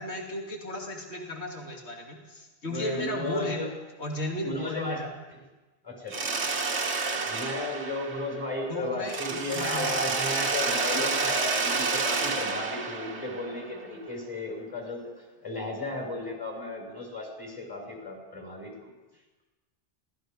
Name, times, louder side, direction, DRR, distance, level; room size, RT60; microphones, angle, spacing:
voice 1, 0.0-3.6 4.0-5.1 8.7-10.0, left 1 dB, 65° left, 0 dB, 3.0 m, -34 dB
voice 2, 2.6-3.7 4.4-5.0 5.8-6.3 7.2-18.9, left 2 dB, 20° left, 0 dB, 6.3 m, -35 dB
Mechanisms, 6.1-8.7 9.1-13.9, right 4 dB, 70° right, 1.8 m, -29 dB
26.5 x 18.5 x 5.4 m, 1.1 s
omnidirectional pair, 1.2 m